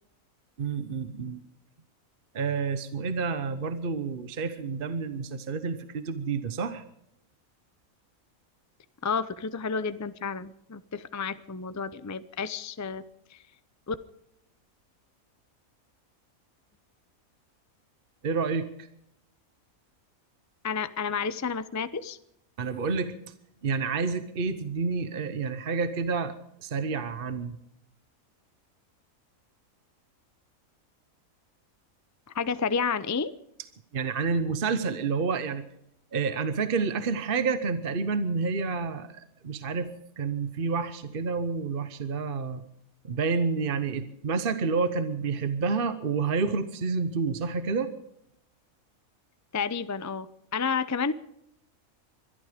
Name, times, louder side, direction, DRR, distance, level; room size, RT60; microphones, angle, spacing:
voice 1, 0.6-1.4 2.3-6.8 18.2-18.7 22.6-23.1 23.6-26.3 26.6-27.6 33.9-35.6 36.1-39.9 40.2-42.6 43.0-47.9, right 4 dB, 45° right, 12 dB, 1.0 m, -29 dB
voice 2, 9.0-13.0 13.3-13.4 13.9-14.0 20.6-22.2 32.3-33.3 49.5-51.1, left 5 dB, 25° left, 14 dB, 0.4 m, -30 dB
22.5 x 12.5 x 5.1 m, 0.75 s
omnidirectional pair, 1.5 m